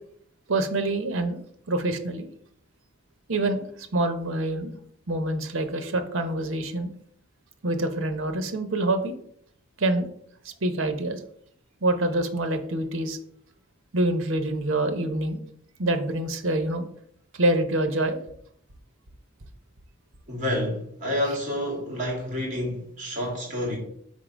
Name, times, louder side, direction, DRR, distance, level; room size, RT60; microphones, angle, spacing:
voice 1, 0.5-2.3 3.3-3.7 3.9-4.7 5.1-6.9 7.6-9.1 9.8-10.1 10.4-11.2 11.8-13.2 13.9-15.4 15.8-16.9 17.3-18.2, right 1 dB, 75° right, 0.8 m, -26 dB
voice 2, 20.3-23.8, left 1 dB, 35° right, 2.3 m, -29 dB
5.2 x 3.7 x 4.9 m
head